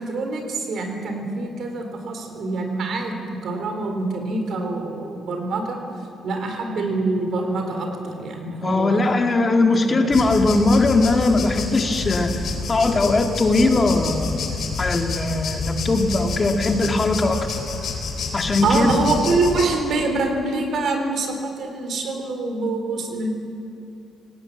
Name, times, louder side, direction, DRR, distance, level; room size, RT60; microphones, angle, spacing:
voice 1, 0.0-5.8 6.2-9.1 9.8-10.2 18.6-23.3, right 3 dB, 65° right, 4 dB, 4.2 m, -25 dB
voice 2, 8.6-12.3 12.7-14.4 14.8-17.4 18.3-19.0, left 2 dB, 30° left, 4 dB, 2.0 m, -20 dB
sound 1, 10.1-19.6, left 4 dB, 65° left, 4.1 m, -28 dB
19.0 x 17.5 x 8.9 m, 2.6 s
cardioid pair, 90°, 0 cm